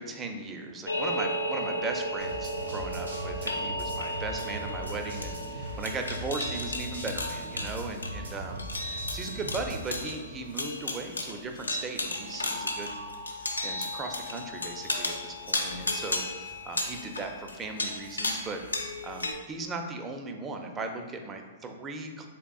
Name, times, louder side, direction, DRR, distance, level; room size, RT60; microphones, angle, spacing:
voice 1, 0.0-13.0 13.4-22.3, right 3 dB, 20° right, 4 dB, 0.4 m, -38 dB
sound 1, 0.9-19.3, left 1 dB, 90° left, 0.4 m, -34 dB
sound 2, 2.2-9.9, equal, 80° right, 0.9 m, -40 dB
3.6 x 3.3 x 2.3 m, 1.5 s
figure-of-eight pair, 110°, 0 cm